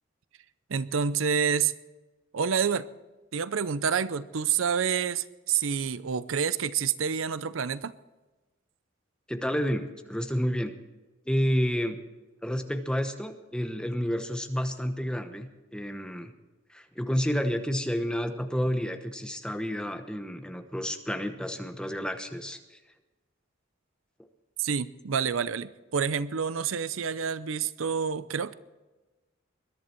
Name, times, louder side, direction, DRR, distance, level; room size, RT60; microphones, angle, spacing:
voice 1, 0.7-1.7 2.3-2.9 3.3-7.9 24.6-28.5, right 7 dB, 85° right, 16 dB, 0.6 m, -28 dB
voice 2, 9.3-10.7 11.3-12.0 12.4-16.3 16.7-22.8, equal, 5° left, 6 dB, 1.0 m, -30 dB
21.5 x 11.5 x 4.5 m, 1.2 s
head